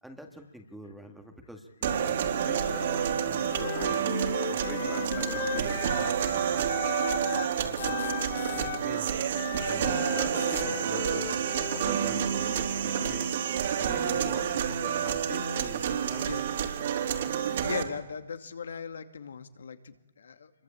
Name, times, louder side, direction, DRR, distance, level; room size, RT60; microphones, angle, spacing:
voice 1, 0.0-4.2 4.5-8.1 8.5-9.1 9.7-13.3 13.8-16.3, equal, ahead, 4 dB, 1.8 m, -45 dB
sound 1, 1.8-17.8, right 8 dB, 50° right, 3.6 m, -29 dB
Wind instrument woodwind instrument, 3.5-7.5 7.8-12.0, left 9 dB, 35° left, 2.1 m, -37 dB
voice 2, 7.8-8.6 10.3-10.6 16.3-16.4 17.6-20.5, left 6 dB, 75° left, 9 dB, 2.4 m, -39 dB
26.5 x 23.0 x 8.7 m, 1.0 s
hypercardioid pair, 165°, 0 cm